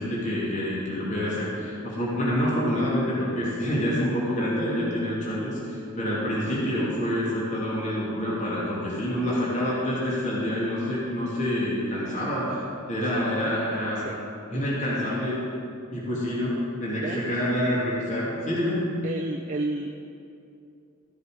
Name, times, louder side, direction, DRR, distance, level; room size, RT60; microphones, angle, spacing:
voice 1, 0.0-14.0 14.5-15.4 15.9-18.8, equal, 35° left, -6 dB, 2.6 m, -27 dB
voice 2, 19.0-19.9, right 2 dB, 40° right, 1 dB, 0.6 m, -31 dB
14.5 x 7.3 x 5.1 m, 2.6 s
head